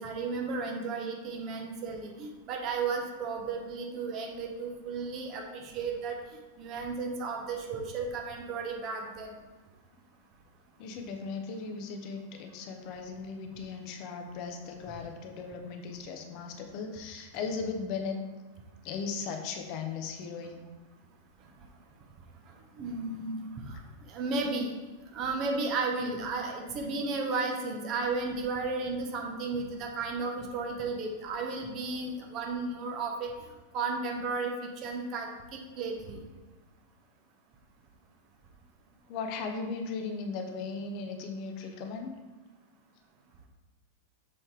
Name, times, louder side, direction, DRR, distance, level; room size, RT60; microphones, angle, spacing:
voice 1, 0.0-6.2 6.6-9.4 22.8-23.4 23.7-23.8 24.1-24.7 25.1-33.3 33.7-34.5 34.8-36.2, right 4 dB, 35° right, 2 dB, 1.0 m, -34 dB
voice 2, 10.8-18.2 18.8-20.7 39.1-42.1, left 4 dB, 45° left, 4 dB, 0.7 m, -37 dB
6.7 x 4.2 x 3.3 m, 1.2 s
figure-of-eight pair, 90°, 0 cm